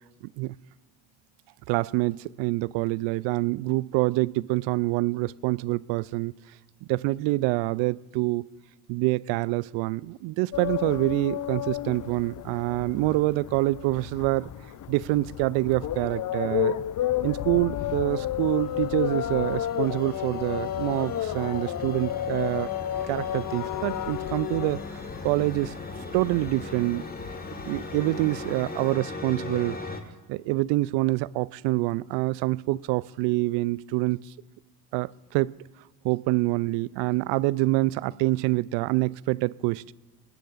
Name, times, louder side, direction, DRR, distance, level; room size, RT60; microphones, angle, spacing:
voice 1, 1.7-6.3 6.8-8.5 8.9-14.5 14.9-16.8 17.2-22.7 23.1-25.7 26.1-27.1 27.7-29.8 30.3-34.2 34.9-35.5 36.0-39.9, right 20 dB, 70° right, 0.5 m, -26 dB
sound 1, 10.5-28.9, left 11 dB, 40° left, 0.6 m, -32 dB
sound 2, 18.4-30.0, left 2 dB, 20° left, 1.7 m, -39 dB
19.5 x 18.0 x 2.5 m
hypercardioid pair, 50°, 46 cm